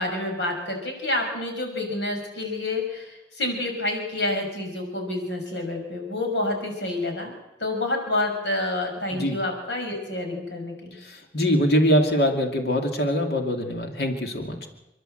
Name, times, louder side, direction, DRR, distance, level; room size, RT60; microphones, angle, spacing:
voice 1, 0.0-7.3 7.6-11.0, left 2 dB, 90° left, 2 dB, 6.1 m, -28 dB
voice 2, 11.0-14.7, equal, 65° left, 3 dB, 2.6 m, -23 dB
29.0 x 11.5 x 7.9 m, 0.99 s
head